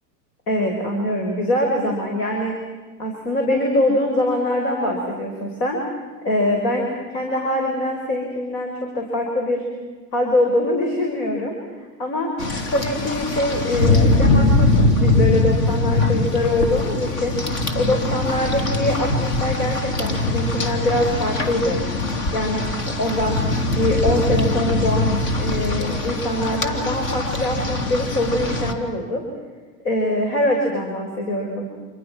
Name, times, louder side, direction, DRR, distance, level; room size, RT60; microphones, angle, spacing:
voice 1, 0.5-2.5 3.0-5.8 6.2-9.6 10.1-11.6 12.0-12.3 12.7-17.4 17.7-21.8 22.3-23.4 23.7-29.2 29.8-31.6, left 1 dB, 65° left, 2 dB, 5.8 m, -23 dB
Rain, 12.4-28.7, left 2 dB, 45° left, 3.0 m, -22 dB
28.5 x 28.0 x 6.1 m, 1.4 s
hypercardioid pair, 145°, 49 cm